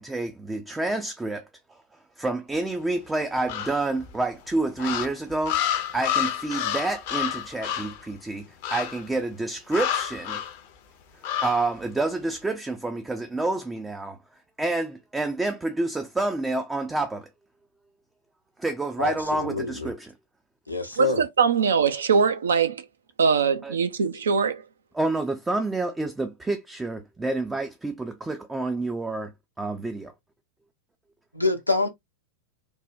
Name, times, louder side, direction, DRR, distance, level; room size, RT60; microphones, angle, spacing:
voice 1, 0.0-1.5 2.2-10.4 11.4-14.2 14.6-17.3 18.6-20.1 21.0-21.1 23.6-23.7 24.9-29.3 29.6-30.1, right 2 dB, 10° right, 0.4 m, -28 dB
sound 1, 3.5-4.1 4.8-8.0 8.6-9.1 9.7-10.6 11.2-11.7, left 10 dB, 50° left, 0.5 m, -29 dB
voice 2, 19.0-19.9 20.7-21.2 31.3-31.9, left 3 dB, 85° left, 0.7 m, -26 dB
voice 3, 21.0-22.8 23.2-24.6, right 6 dB, 65° right, 0.5 m, -22 dB
3.4 x 2.1 x 2.5 m
figure-of-eight pair, 90°, 0 cm